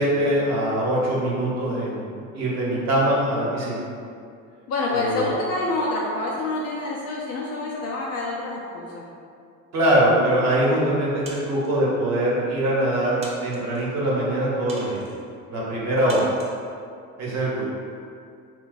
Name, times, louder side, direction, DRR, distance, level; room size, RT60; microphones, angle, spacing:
voice 1, 0.0-3.8 5.0-5.3 9.7-15.0 15.5-16.3 17.2-17.6, right 1 dB, 40° right, -6 dB, 1.0 m, -23 dB
voice 2, 4.7-9.0, left 2 dB, 35° left, -3 dB, 0.4 m, -27 dB
sound 1, 11.3-11.8 12.5-12.6 13.2-13.9 14.7-15.2 16.1-16.6, right 2 dB, 15° right, 0.5 m, -42 dB
2.3 x 2.3 x 3.9 m, 2.4 s
supercardioid pair, 100°, 41 cm